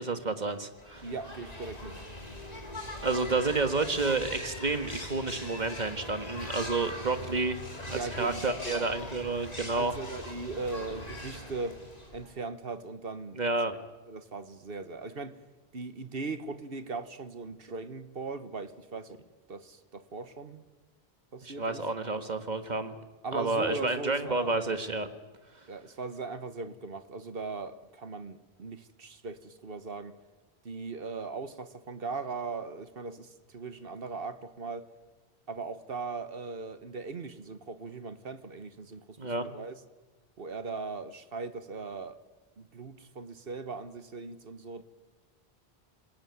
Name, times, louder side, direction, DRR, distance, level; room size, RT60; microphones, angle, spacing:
voice 1, 0.0-1.1 3.0-7.6 7.9-9.9 13.3-13.8 21.4-23.0 23.3-25.1 39.2-39.5, right 3 dB, 45° right, 1.7 m, -30 dB
sound 1, 0.8-12.4, left 1 dB, 40° left, 3.1 m, -41 dB
voice 2, 1.0-2.0 7.9-8.9 9.7-11.8 12.1-13.4 14.1-15.4 15.7-19.2 19.5-20.6 21.3-21.8 23.2-24.5 25.7-30.2 30.6-34.9 35.5-39.7 40.4-42.2 42.6-44.8, right 4 dB, 65° right, 1.4 m, -39 dB
27.5 x 17.0 x 9.5 m
omnidirectional pair, 1.1 m